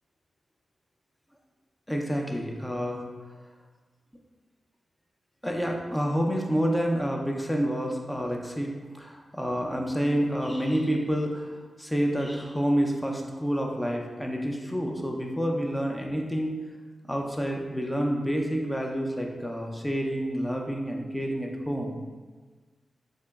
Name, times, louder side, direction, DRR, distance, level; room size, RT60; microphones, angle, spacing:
voice 1, 1.9-3.0 5.4-16.6 17.1-22.0, equal, 10° left, 1 dB, 0.5 m, -28 dB
3.7 x 2.9 x 2.3 m, 1.4 s
cardioid pair, 60°, 0 cm